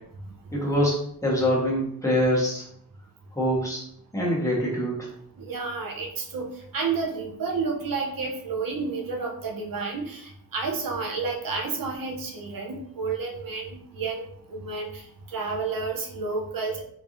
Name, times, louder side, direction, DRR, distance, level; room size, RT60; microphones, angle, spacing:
voice 1, 0.5-2.6 3.3-3.8 4.1-5.1, equal, 10° left, -5 dB, 1.1 m, -24 dB
voice 2, 5.4-14.2 14.5-16.8, right 4 dB, 70° right, 1 dB, 0.7 m, -31 dB
4.0 x 3.4 x 2.5 m, 0.69 s
wide cardioid pair, 175°, 35 cm